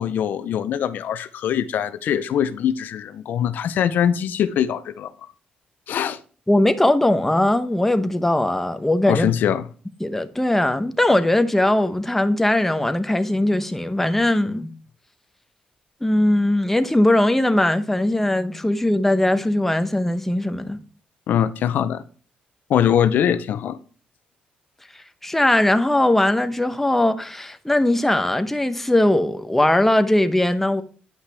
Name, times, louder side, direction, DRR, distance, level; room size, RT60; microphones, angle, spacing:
voice 1, 0.0-5.1 5.9-6.2 9.1-9.6 21.3-22.0 22.7-23.8, left 9 dB, 70° left, 0.5 m, -22 dB
voice 2, 6.5-9.3 10.0-14.7 16.0-20.8 25.2-30.8, left 1 dB, 10° left, 0.8 m, -20 dB
9.6 x 5.6 x 3.4 m
cardioid pair, 75°, 3 cm